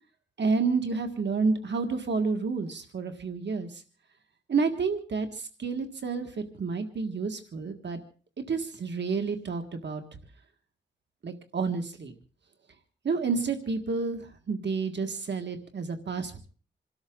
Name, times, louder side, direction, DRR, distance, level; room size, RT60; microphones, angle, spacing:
voice 1, 0.4-3.8 4.5-8.0 8.5-10.0 11.2-12.1 13.0-14.2 14.5-16.4, right 4 dB, 75° right, 6 dB, 1.8 m, -30 dB
27.5 x 13.0 x 3.8 m, 0.40 s
wide cardioid pair, 100°, 19 cm